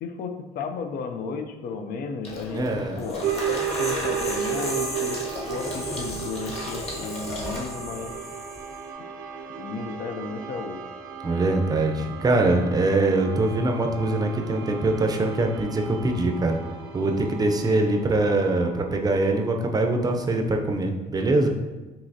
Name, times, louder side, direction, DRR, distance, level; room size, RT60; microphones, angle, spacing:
voice 1, 0.0-5.2 5.5-8.2 9.6-10.8, left 4 dB, 60° left, 6 dB, 0.5 m, -34 dB
Water tap faucet / Sink (filling or washing), 2.2-7.7, left 1 dB, 35° left, 1.2 m, -35 dB
voice 2, 2.5-3.0 11.2-16.6 16.9-21.5, right 2 dB, 20° right, 3 dB, 0.5 m, -23 dB
sound 1, 3.0-8.8, left 2 dB, 20° left, 0.6 m, -37 dB
sound 2, 3.2-20.3, right 9 dB, 70° right, 0.6 m, -35 dB
5.3 x 2.9 x 2.7 m, 1.2 s
cardioid pair, 110°, 17 cm